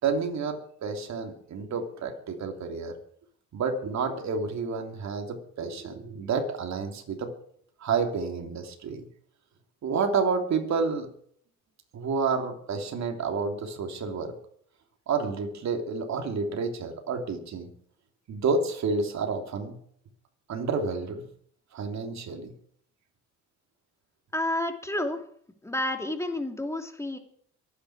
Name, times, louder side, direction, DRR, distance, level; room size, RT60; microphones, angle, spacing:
voice 1, 0.0-3.0 3.5-7.3 7.8-9.0 9.8-11.1 11.9-14.3 15.1-17.7 18.3-19.8 20.5-21.2 21.7-22.5, right 4 dB, 65° right, 4 dB, 3.2 m, -29 dB
voice 2, 24.3-25.2 25.6-27.2, left 1 dB, 10° left, 4 dB, 2.7 m, -30 dB
23.5 x 9.7 x 4.8 m, 0.62 s
cardioid pair, 90°, 30 cm